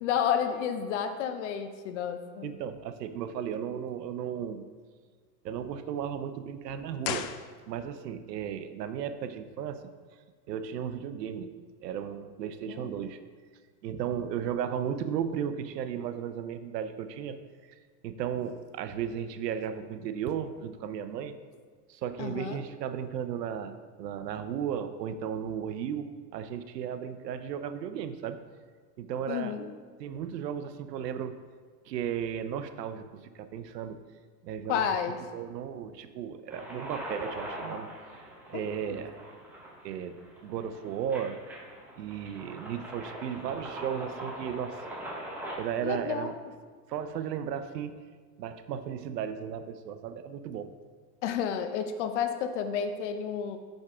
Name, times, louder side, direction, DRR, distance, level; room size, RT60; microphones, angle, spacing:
voice 1, 0.0-2.5 12.7-13.1 22.2-22.6 29.3-29.7 34.7-35.2 38.5-39.0 45.8-46.5 51.2-53.6, left 8 dB, 50° left, 8 dB, 0.6 m, -31 dB
voice 2, 2.4-4.6 5.4-7.3 7.7-9.9 10.5-13.2 13.8-17.4 17.6-17.8 18.0-21.4 21.9-28.4 29.0-29.6 30.0-31.4 31.9-34.0 34.4-34.9 35.3-39.1 39.8-41.4 42.0-44.8 45.6-46.4 46.9-48.0 48.4-50.7, right 8 dB, 85° right, 10 dB, 0.7 m, -35 dB
sound 1, 7.0-8.1 8.4-8.5, left 10 dB, 90° left, 0.6 m, -36 dB
sound 2, 36.5-45.5, right 1 dB, 5° right, 0.5 m, -42 dB
6.1 x 5.3 x 3.5 m, 1.6 s
supercardioid pair, 140°, 48 cm